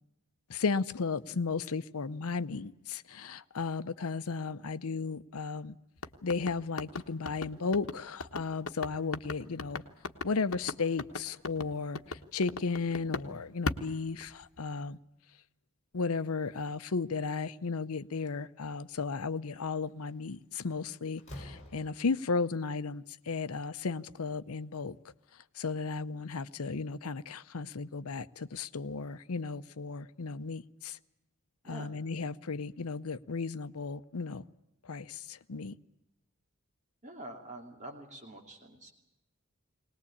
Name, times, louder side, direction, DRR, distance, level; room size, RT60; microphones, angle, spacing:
voice 1, 0.5-5.8 6.2-9.8 10.2-15.0 15.9-25.0 25.5-31.0 31.6-34.4 34.8-35.7, left 4 dB, 80° left, 0.7 m, -34 dB
sound 1, 6.0-13.3 13.7-14.7, left 3 dB, 65° left, 1.3 m, -37 dB
Slam, 19.9-20.1 20.5-22.4, left 1 dB, 30° left, 4.5 m, -48 dB
voice 2, 37.0-38.9, right 1 dB, 35° right, 2.8 m, -46 dB
21.5 x 19.5 x 8.5 m
head